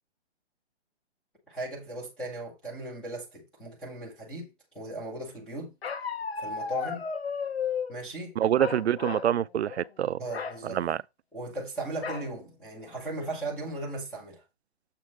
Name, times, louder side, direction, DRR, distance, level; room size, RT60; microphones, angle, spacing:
voice 1, 1.5-4.5 4.7-5.7 6.4-7.1 7.9-8.3 10.2-10.8 11.3-14.4, right 2 dB, ahead, 0.9 m, -37 dB
Bark, 5.8-7.9 8.6-9.3 9.6-9.9 10.2-10.6 12.0-12.3 12.8-12.9 13.2-13.7, left 6 dB, 65° left, 1.6 m, -34 dB
voice 2, 8.4-10.2 10.7-11.0, right 10 dB, 75° right, 0.5 m, -26 dB
7.5 x 3.7 x 4.7 m
hypercardioid pair, 175°, 34 cm